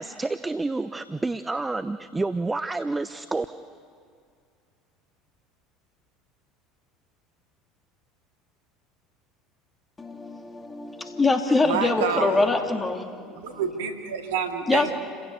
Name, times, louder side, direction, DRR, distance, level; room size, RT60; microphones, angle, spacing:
voice 1, 0.0-3.5, right 3 dB, 15° right, 13 dB, 0.7 m, -29 dB
voice 2, 10.0-13.1 14.7-14.9, left 3 dB, 20° left, 5 dB, 2.8 m, -24 dB
voice 3, 11.6-12.4 13.4-14.9, right 6 dB, 75° right, 5 dB, 2.2 m, -28 dB
29.0 x 16.5 x 8.3 m, 2.3 s
hypercardioid pair, 70°, 0 cm